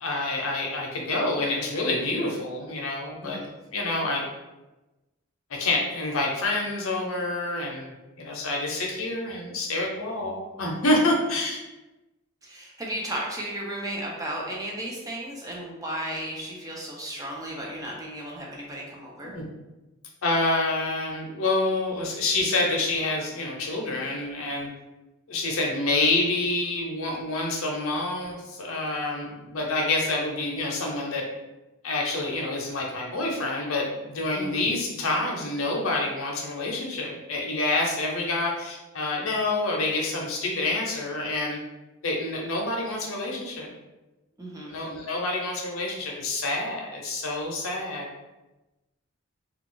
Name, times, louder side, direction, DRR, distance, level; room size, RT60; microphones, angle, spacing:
voice 1, 0.0-3.4 3.7-4.3 5.5-11.6 19.2-19.5 20.2-24.7 25.3-31.2 31.8-41.6 42.0-43.7 44.7-48.1, left 2 dB, 80° left, -1 dB, 0.7 m, -27 dB
voice 2, 12.4-19.4 34.3-34.6 44.4-44.8, right 1 dB, 15° right, -2 dB, 0.5 m, -34 dB
2.4 x 2.3 x 3.7 m, 1.1 s
head